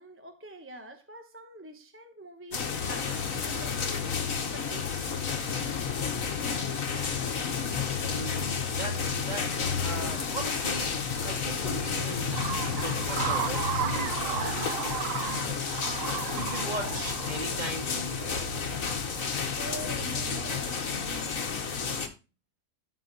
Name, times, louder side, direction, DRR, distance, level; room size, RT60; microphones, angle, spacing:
voice 1, 0.0-5.3 19.6-21.9, right 1 dB, 10° right, 0.7 m, -45 dB
sound 1, 2.5-22.1, left 5 dB, 60° left, 1.7 m, -31 dB
voice 2, 8.1-9.0 9.3-9.5 9.8-11.0 11.2-15.7 16.3-18.5, right 2 dB, 30° right, 2.0 m, -39 dB
sound 2, 12.3-17.4, right 9 dB, 65° right, 0.6 m, -34 dB
13.5 x 4.5 x 4.0 m
omnidirectional pair, 1.6 m